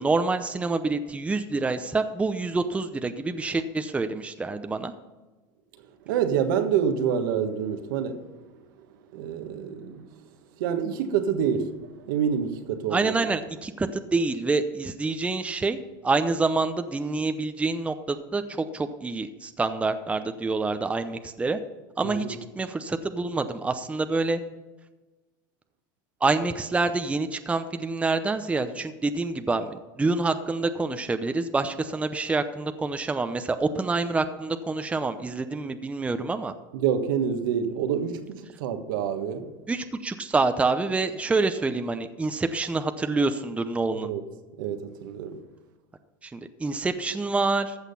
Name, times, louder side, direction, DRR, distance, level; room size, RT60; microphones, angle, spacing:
voice 1, 0.0-4.9 12.9-21.6 22.0-22.3 22.6-24.4 26.2-36.5 39.7-44.1 46.2-47.8, right 3 dB, 10° right, 0.7 m, -27 dB
voice 2, 6.0-8.5 9.1-10.2 10.6-13.4 22.0-22.4 36.7-39.5 44.0-44.2 44.6-45.4, right 8 dB, 80° right, 1.5 m, -27 dB
14.5 x 6.5 x 5.5 m
supercardioid pair, 115°, 11 cm